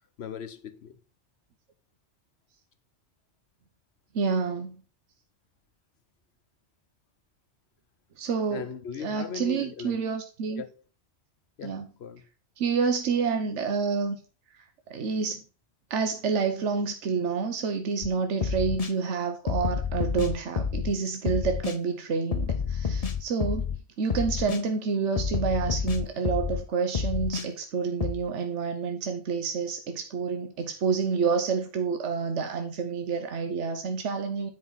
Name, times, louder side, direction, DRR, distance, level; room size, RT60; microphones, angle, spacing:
voice 1, 0.2-0.9 8.5-10.0 10.5-10.8 11.6-12.2, left 7 dB, 65° left, 1.0 m, -38 dB
voice 2, 4.1-4.8 8.2-8.7 9.0-10.6 11.6-11.9 12.6-14.2 14.9-15.4 15.9-23.7 24.0-34.5, right 5 dB, 80° right, 1.2 m, -28 dB
sound 1, 18.0-18.1 18.4-18.9 19.5-20.9 21.3-21.8 22.3-23.8 24.1-24.6 25.2-26.6 26.9-27.5 28.0-28.1, left 6 dB, 40° left, 0.7 m, -29 dB
9.6 x 5.1 x 4.0 m
omnidirectional pair, 1.2 m